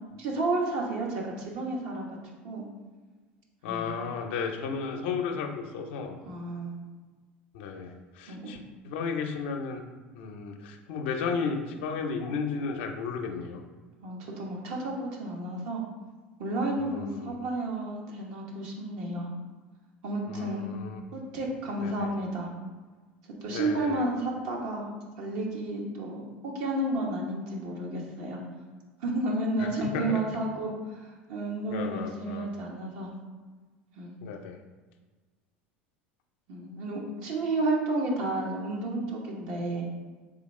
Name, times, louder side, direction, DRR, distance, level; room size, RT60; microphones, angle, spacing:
voice 1, 0.2-2.1 2.4-2.6 3.7-3.9 6.2-6.8 8.3-8.5 14.0-15.8 16.4-19.3 20.0-20.7 21.1-22.5 23.4-24.9 25.2-28.4 29.0-30.7 31.3-33.1 34.0-34.3 36.5-39.9, right 2 dB, 65° right, -1 dB, 1.0 m, -31 dB
voice 2, 3.6-6.2 7.5-8.6 8.8-9.8 10.1-13.6 16.8-17.4 20.3-21.0 21.8-22.1 23.5-24.1 29.6-30.2 31.7-32.5 34.2-34.6, left 5 dB, 70° left, 4 dB, 0.5 m, -34 dB
3.9 x 3.4 x 3.1 m, 1.4 s
hypercardioid pair, 85°, 6 cm